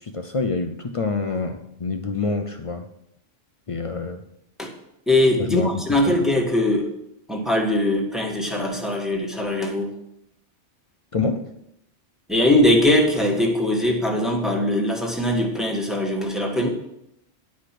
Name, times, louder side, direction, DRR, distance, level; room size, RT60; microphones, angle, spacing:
voice 1, 0.0-2.9 3.7-4.2 5.5-6.2 11.1-11.5, left 3 dB, 45° left, 7 dB, 0.4 m, -27 dB
voice 2, 5.1-6.9 7.3-9.9 12.3-16.7, left 1 dB, ahead, 0 dB, 1.3 m, -21 dB
10.5 x 5.0 x 5.9 m, 0.80 s
omnidirectional pair, 1.2 m